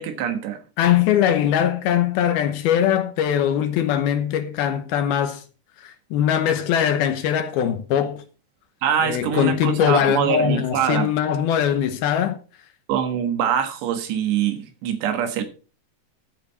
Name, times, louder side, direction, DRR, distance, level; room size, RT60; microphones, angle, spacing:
voice 1, 0.0-0.6 8.8-11.1 12.9-15.4, right 8 dB, 80° right, 3.7 m, -24 dB
voice 2, 0.8-5.4 5.8-8.2 9.0-12.4, left 9 dB, 75° left, 2.7 m, -21 dB
13.5 x 8.5 x 4.2 m
omnidirectional pair, 4.9 m